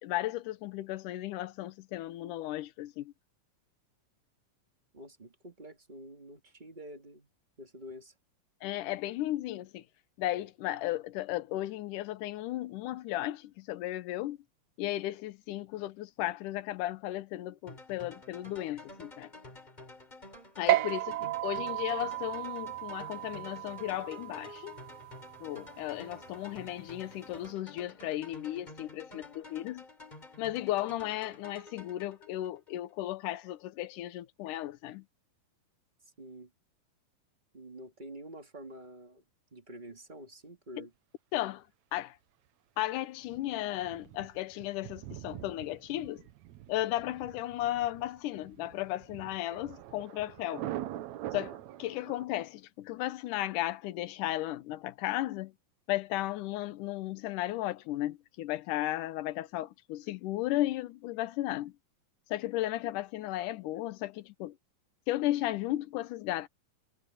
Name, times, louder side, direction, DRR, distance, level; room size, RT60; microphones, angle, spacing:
voice 1, 0.0-3.1 8.6-9.8 10.2-14.4 14.8-19.3 20.6-21.1 21.4-24.7 25.4-29.8 30.4-35.1 40.8-40.9 41.3-41.7 41.9-42.2 42.8-46.3 46.7-50.7 51.3-55.5 55.9-61.7 62.3-64.6 65.1-66.5, left 15 dB, 75° left, 2.3 m, -35 dB
voice 2, 4.9-7.3 7.6-8.1 20.7-21.3 36.2-36.5 37.5-39.2 39.5-40.9, right 1 dB, 15° right, 2.0 m, -48 dB
sound 1, 17.7-32.7, left 2 dB, 10° left, 4.1 m, -50 dB
sound 2, 20.7-27.5, right 18 dB, 85° right, 1.6 m, -35 dB
Thunder, 43.2-52.2, right 13 dB, 70° right, 1.9 m, -44 dB
omnidirectional pair, 3.9 m